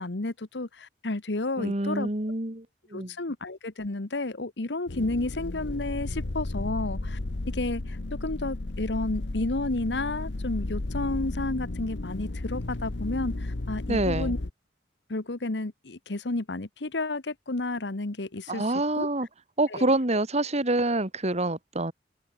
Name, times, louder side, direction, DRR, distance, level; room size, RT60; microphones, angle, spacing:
voice 1, 0.0-2.1 2.9-7.2 7.5-14.4 15.1-18.7 18.9-19.1 19.7-19.9, left 2 dB, 70° left, 1.3 m, -31 dB
voice 2, 1.6-2.6 2.9-3.1 13.9-14.3 18.5-19.3 19.6-21.9, right 2 dB, 40° right, 2.6 m, -26 dB
sound 1, 4.9-14.5, left 2 dB, 85° left, 1.1 m, -33 dB
head